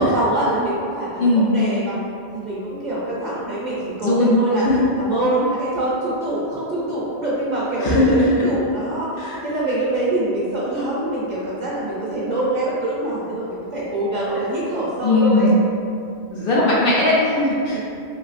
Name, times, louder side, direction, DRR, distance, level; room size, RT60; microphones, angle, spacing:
voice 1, 0.0-2.0 2.3-4.6 4.9-9.1 9.4-15.6 17.7-17.8, right 1 dB, 50° right, -7 dB, 0.7 m, -24 dB
voice 2, 1.2-1.5 4.0-4.9 7.8-8.4 9.2-9.4 15.0-15.5 16.3-17.8, left 2 dB, 65° left, -5 dB, 0.7 m, -18 dB
3.1 x 2.6 x 2.4 m, 2.5 s
omnidirectional pair, 1.1 m